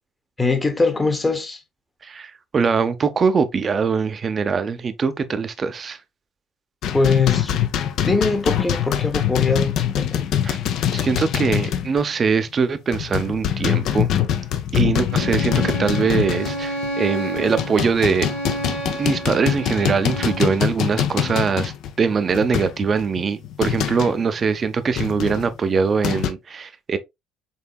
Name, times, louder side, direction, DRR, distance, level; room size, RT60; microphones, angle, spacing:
voice 1, 0.4-1.6 6.9-7.5 8.0-10.3, left 4 dB, 20° left, 1.0 m, -21 dB
voice 2, 2.0-6.0 10.4-10.6 10.9-14.1 14.7-18.3 19.0-21.7 22.0-27.0, right 5 dB, 35° right, 0.6 m, -22 dB
sound 1, 6.8-12.1 12.3-12.5 12.9-16.9 17.4-24.2 25.0-26.3, left 10 dB, 55° left, 0.5 m, -24 dB
Bowed string instrument, 15.1-20.5, right 2 dB, 85° left, 2.3 m, -30 dB
5.5 x 3.6 x 2.3 m
figure-of-eight pair, 55°, 0 cm